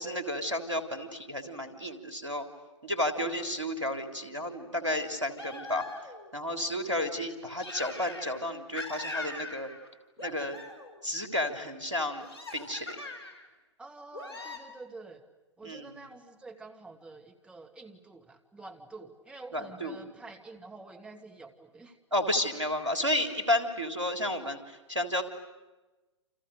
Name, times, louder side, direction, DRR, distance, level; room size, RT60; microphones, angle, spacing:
voice 1, 0.0-2.4 2.8-5.8 6.3-9.7 10.2-10.6 11.0-12.3 12.5-13.0 15.6-16.0 19.5-20.0 22.1-25.2, left 1 dB, 85° right, 6 dB, 3.7 m, -32 dB
sound 1, 5.4-6.3 7.6-8.4 8.7-9.9 10.2-11.0 12.2-13.5 14.1-14.6, left 3 dB, 60° left, 5.2 m, -41 dB
voice 2, 13.8-15.2 15.6-22.0, right 3 dB, 5° right, 3 dB, 2.3 m, -48 dB
29.5 x 28.5 x 6.7 m, 1.1 s
figure-of-eight pair, 110°, 15 cm